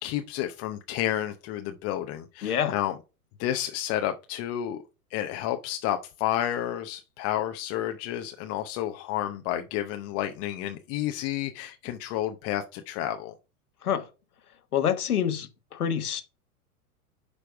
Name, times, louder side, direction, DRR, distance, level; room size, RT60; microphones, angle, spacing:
voice 1, 0.0-3.0 3.4-4.8 5.1-13.3, left 12 dB, 35° left, 0.7 m, -31 dB
voice 2, 2.4-2.7 13.8-14.1 14.7-16.2, left 9 dB, 80° left, 1.4 m, -27 dB
10.0 x 3.4 x 4.7 m
hypercardioid pair, 105°, 44 cm